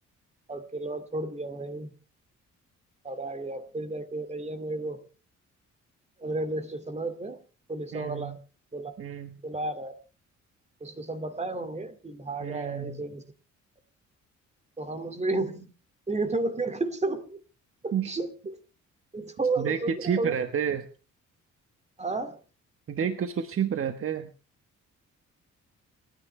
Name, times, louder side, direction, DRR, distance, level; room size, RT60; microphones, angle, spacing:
voice 1, 0.5-1.9 3.0-5.1 6.2-7.4 7.7-8.4 8.7-8.9 9.4-9.9 10.8-13.2 14.8-15.7 16.1-17.4 17.8-18.6 19.1-20.4 22.0-22.4, right 2 dB, 20° right, 10 dB, 2.4 m, -32 dB
voice 2, 7.9-8.4 9.0-9.3 12.4-13.0 17.9-18.1 19.6-20.9 22.9-24.3, right 8 dB, 45° right, 8 dB, 1.3 m, -30 dB
29.5 x 10.5 x 3.3 m, 0.35 s
cardioid pair, 90°, 30 cm